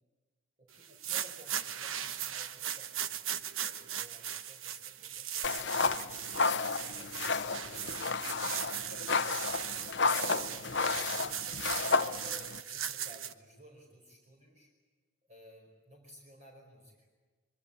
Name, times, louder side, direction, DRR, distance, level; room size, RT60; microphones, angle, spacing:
voice 1, 0.6-9.3 9.7-11.6 12.2-14.7 15.3-17.1, right 1 dB, 35° right, 0 dB, 5.1 m, -56 dB
sound 1, 0.8-13.3, right 10 dB, 80° right, 1.1 m, -38 dB
sound 2, 5.4-12.6, left 4 dB, 55° left, 0.8 m, -32 dB
25.5 x 23.5 x 8.4 m, 1.3 s
head